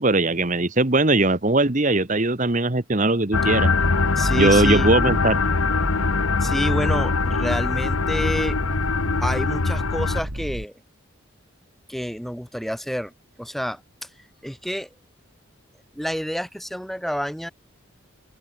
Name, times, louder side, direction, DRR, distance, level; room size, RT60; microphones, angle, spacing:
voice 1, 0.0-3.7 4.4-5.4, right 2 dB, 35° right, 1.4 m, -20 dB
sound 1, 3.3-10.2, left 4 dB, 80° left, 1.0 m, -22 dB
sound 2, 3.8-10.7, right 1 dB, 85° right, 4.5 m, -31 dB
voice 2, 4.2-4.9 6.4-8.6 9.2-10.7 11.9-13.1 13.4-14.1 14.4-14.9 16.0-17.5, equal, ahead, 3.9 m, -28 dB
open air
head